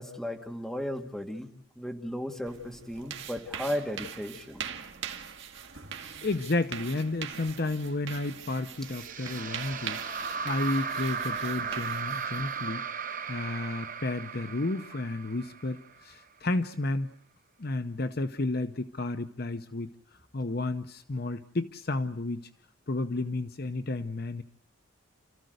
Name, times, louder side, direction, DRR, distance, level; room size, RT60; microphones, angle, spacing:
voice 1, 0.0-1.5 1.8-4.6, equal, ahead, 2 dB, 2.2 m, -35 dB
sound 1, 2.5-12.7, right 7 dB, 65° right, 2.1 m, -42 dB
voice 2, 6.2-10.0 10.4-12.8 13.3-17.1 17.6-19.9 20.3-22.4 22.9-24.4, left 2 dB, 50° left, 10 dB, 0.8 m, -32 dB
sound 2, 8.8-16.1, right 5 dB, 40° right, 1.1 m, -36 dB
29.5 x 14.5 x 8.0 m, 0.73 s
head